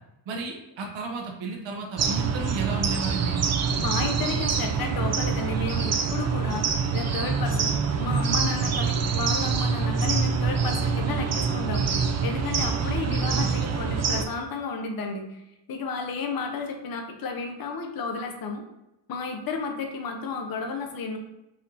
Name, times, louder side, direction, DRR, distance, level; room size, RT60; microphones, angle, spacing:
voice 1, 0.3-3.4 13.0-13.6, right 3 dB, 70° right, 1 dB, 0.9 m, -33 dB
sound 1, 2.0-14.2, right 5 dB, 40° right, 0.4 m, -25 dB
voice 2, 3.7-11.9 12.2-15.4 15.7-18.6 19.1-21.2, left 4 dB, 50° left, 3 dB, 0.7 m, -32 dB
4.3 x 2.7 x 3.7 m, 0.88 s
wide cardioid pair, 130°, 46 cm